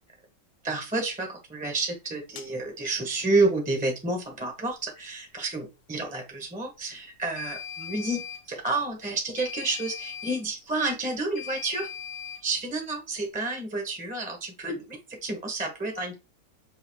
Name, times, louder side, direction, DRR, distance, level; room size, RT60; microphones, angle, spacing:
voice 1, 0.6-11.9 12.4-16.1, right 2 dB, 5° right, 2 dB, 0.7 m, -30 dB
sound 1, 2.4-2.5 7.4-8.4 9.3-10.4 11.3-12.4, left 8 dB, 70° left, 1.0 m, -39 dB
5.6 x 2.5 x 3.5 m, 0.27 s
omnidirectional pair, 1.9 m